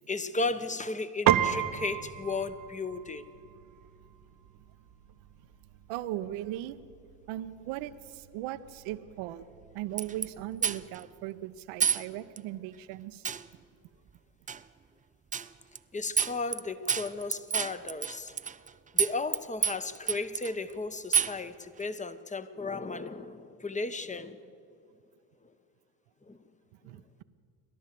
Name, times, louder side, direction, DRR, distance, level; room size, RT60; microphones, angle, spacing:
voice 1, 0.1-3.3 15.9-18.3 18.9-24.4 26.3-26.4, left 3 dB, 15° left, 1.1 m, -35 dB
Piano, 1.3-10.9, right 10 dB, 40° right, 1.1 m, -35 dB
voice 2, 5.9-6.8 7.3-9.5 9.7-13.2 26.8-27.2, right 13 dB, 65° right, 1.0 m, -38 dB
sound 1, 10.0-10.3 10.6-11.0 11.8-12.0 12.4-12.5 13.2-13.5 14.5-14.6 15.3-15.5 15.7-15.8 16.2-16.6 16.9-18.7 19.0-19.4 19.6-20.5 21.1-21.4, right 7 dB, 15° right, 0.5 m, -28 dB
29.0 x 12.0 x 7.7 m
hypercardioid pair, 80°, 50 cm